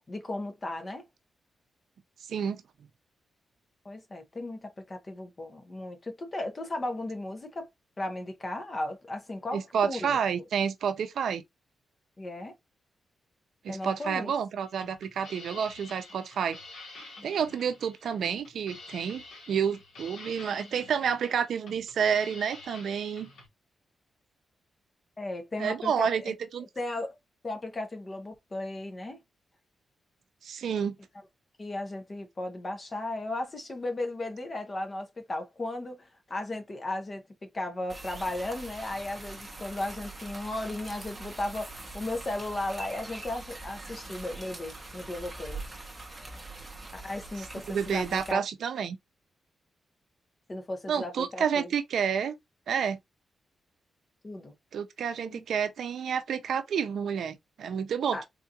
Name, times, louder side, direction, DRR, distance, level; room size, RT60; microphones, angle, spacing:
voice 1, 0.1-1.0 3.8-7.7 8.0-10.4 12.2-12.5 13.7-14.3 25.2-26.3 26.8-27.2 27.4-29.2 31.6-37.2 37.5-45.6 46.9-48.4 50.5-51.7 54.2-54.5 55.2-55.4 58.1-58.2, left 2 dB, 25° left, 0.6 m, -35 dB
voice 2, 2.3-2.6 9.5-11.4 13.6-16.6 17.2-23.3 25.6-26.7 30.4-31.0 47.7-49.0 50.9-52.3 52.7-53.0 54.7-58.3, right 7 dB, 75° right, 0.4 m, -29 dB
sound 1, 14.6-23.5, left 2 dB, 75° left, 1.4 m, -48 dB
sound 2, 37.9-48.3, right 2 dB, 15° right, 0.7 m, -43 dB
3.7 x 2.3 x 2.7 m
wide cardioid pair, 170°, 0 cm